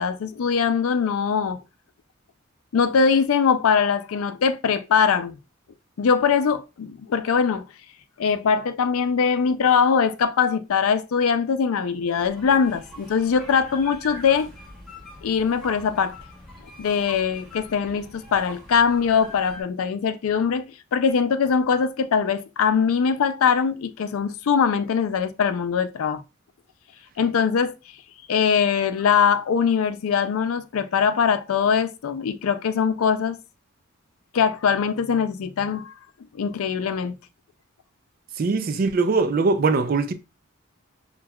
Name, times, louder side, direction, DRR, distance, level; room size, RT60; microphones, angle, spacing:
voice 1, 0.0-1.6 2.7-5.4 6.0-7.6 8.2-14.5 15.2-16.2 16.8-20.6 20.9-26.2 27.2-27.7 28.3-33.4 34.3-35.9 36.4-37.2, left 6 dB, 85° left, 0.4 m, -22 dB
sound 1, 12.1-19.6, left 1 dB, ahead, 0.8 m, -43 dB
voice 2, 38.4-40.1, right 4 dB, 45° right, 0.3 m, -21 dB
5.8 x 2.3 x 2.2 m
head